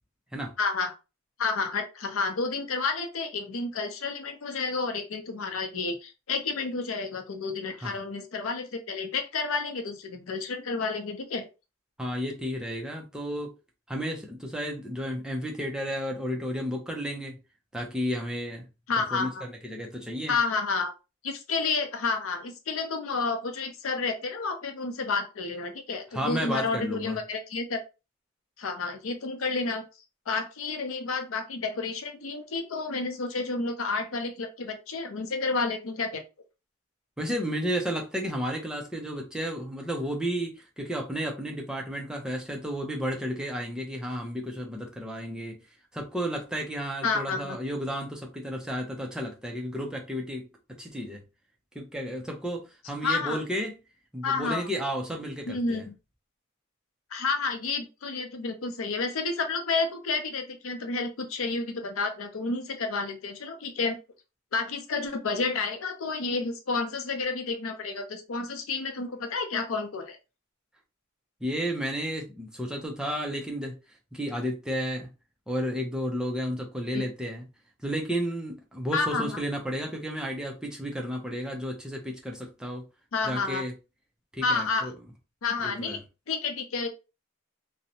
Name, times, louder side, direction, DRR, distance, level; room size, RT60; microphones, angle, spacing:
voice 1, 0.6-0.9 1.4-11.5 18.9-19.4 20.3-20.9 21.2-27.8 28.6-29.8 30.3-36.2 47.0-47.6 53.0-53.4 54.2-54.6 55.5-55.8 57.1-64.0 64.5-70.2 76.9-77.0 78.9-79.4 83.1-83.6 84.4-84.9 85.4-86.0 86.3-86.9, left 4 dB, 85° left, 0.6 m, -30 dB
voice 2, 12.0-13.5 13.9-17.3 17.7-18.7 19.0-20.4 26.1-27.2 37.2-45.6 45.9-50.5 50.8-51.2 51.7-53.7 54.1-55.8 71.4-73.8 74.1-75.1 75.5-77.5 77.8-82.8 83.2-83.7 84.3-84.9 85.6-86.0, equal, 5° right, 0.4 m, -32 dB
2.6 x 2.1 x 2.7 m
head